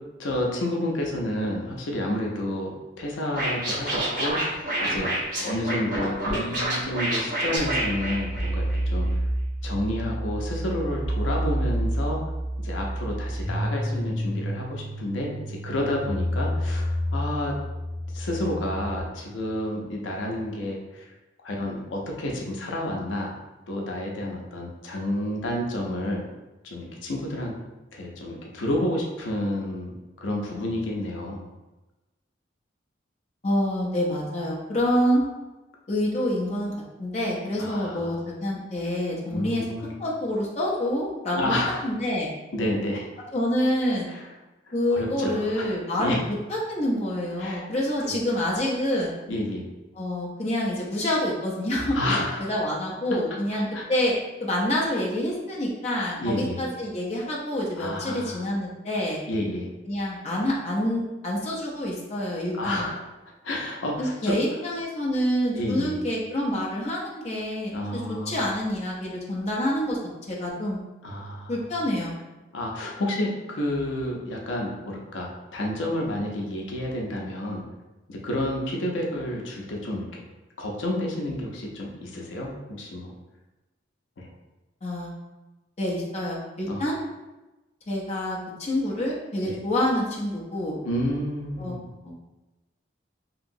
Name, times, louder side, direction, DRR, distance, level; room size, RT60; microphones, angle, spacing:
voice 1, 0.2-9.3 9.6-12.2 12.6-17.5 18.1-21.0 21.4-23.3 23.7-26.2 26.6-27.5 27.9-31.5 37.5-38.2 39.3-39.9 41.3-41.8 42.5-43.1 44.1-44.2 44.7-46.2 47.4-47.7 48.0-48.1 49.3-49.6 51.9-52.5 53.7-53.9 56.2-56.6 57.8-58.5 59.3-59.7 62.6-63.0 63.4-64.4 65.5-66.0 67.7-68.5 71.0-71.6 72.5-77.6 78.1-80.2 80.6-83.2 84.2-84.3 86.7-86.9 89.4-89.6 90.8-91.9, left 1 dB, 80° left, -1 dB, 0.5 m, -30 dB
Scratching (performance technique), 3.3-8.8, right 1 dB, 45° right, 1.1 m, -28 dB
sound 1, 7.6-19.0, equal, 20° right, 1.2 m, -29 dB
voice 2, 33.4-35.2 35.9-36.7 37.0-39.6 40.0-42.3 43.3-44.1 44.7-49.1 50.0-52.0 52.4-54.1 54.4-59.2 59.8-62.8 64.0-70.0 70.3-70.8 71.5-72.1 84.8-85.1 85.8-87.0 87.9-90.8 91.6-91.8 92.0-92.2, left 1 dB, 35° left, -4 dB, 0.5 m, -27 dB
2.8 x 2.8 x 2.6 m, 1.1 s
head